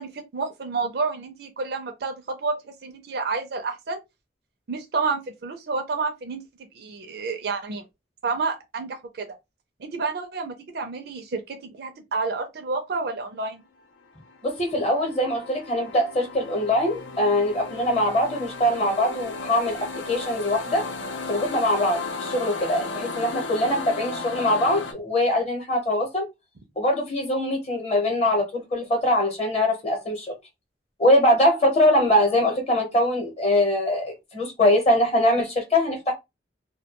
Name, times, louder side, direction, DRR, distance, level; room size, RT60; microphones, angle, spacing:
voice 1, 0.0-4.0 4.7-6.4 6.7-7.8 8.2-9.4 9.8-13.6, right 4 dB, 60° right, 0.4 m, -29 dB
sound 1, 14.2-24.9, left 3 dB, 85° left, 0.5 m, -35 dB
voice 2, 14.4-20.9 21.3-26.3 26.8-30.3 31.0-36.1, left 1 dB, 35° left, 0.8 m, -22 dB
2.2 x 2.2 x 2.8 m
head